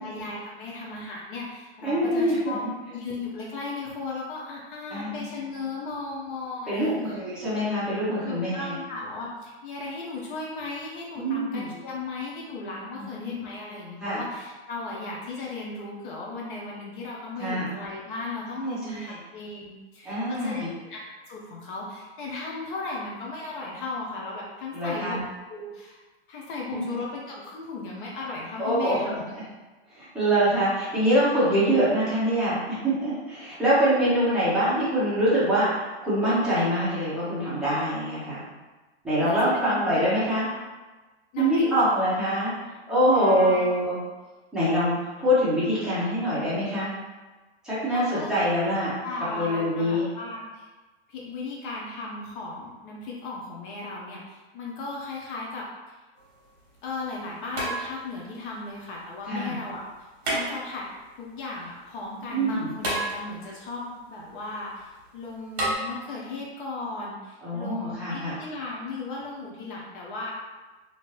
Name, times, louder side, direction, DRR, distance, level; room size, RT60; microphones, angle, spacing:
voice 1, 0.0-7.2 8.2-21.0 21.3-26.0 26.3-29.2 34.0-34.1 39.2-39.4 39.6-39.8 40.2-40.3 41.3-42.0 43.1-43.7 47.9-48.3 49.0-50.7 51.1-55.7 56.8-59.8 60.2-60.9 61.2-70.3, left 3 dB, 50° left, -3 dB, 0.8 m, -36 dB
voice 2, 1.8-2.6 4.9-5.2 6.7-8.8 11.2-11.6 13.0-13.3 14.0-14.2 17.4-17.6 18.6-19.1 20.0-20.7 24.7-25.2 26.7-26.8 28.6-29.0 29.9-35.7 36.0-38.4 39.0-40.4 41.4-42.5 42.9-44.0 44.5-46.9 47.6-48.9 49.3-50.1 59.3-59.5 62.3-62.7 67.4-68.3, equal, ahead, -12 dB, 0.9 m, -24 dB
sound 1, 56.2-56.3 57.5-58.3 60.2-61.0 62.8-63.6 65.6-65.8, right 1 dB, 35° right, 1.4 m, -30 dB
2.7 x 2.6 x 3.1 m, 1.2 s
hypercardioid pair, 145°, 32 cm